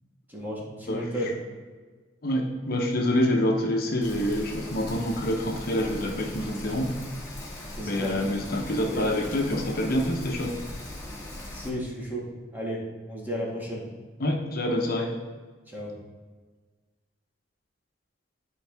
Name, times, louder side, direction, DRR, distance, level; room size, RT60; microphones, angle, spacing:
voice 1, 0.3-1.3 7.8-8.1 8.9-9.1 11.5-12.3 12.5-13.8 15.7-15.9, equal, 10° right, -4 dB, 1.8 m, -33 dB
voice 2, 2.2-6.9 7.8-10.5 14.2-15.1, left 1 dB, 55° left, 1 dB, 1.0 m, -26 dB
Rain, 4.0-11.7, left 1 dB, 15° left, 1.9 m, -40 dB
11.0 x 4.7 x 3.5 m, 1.4 s
head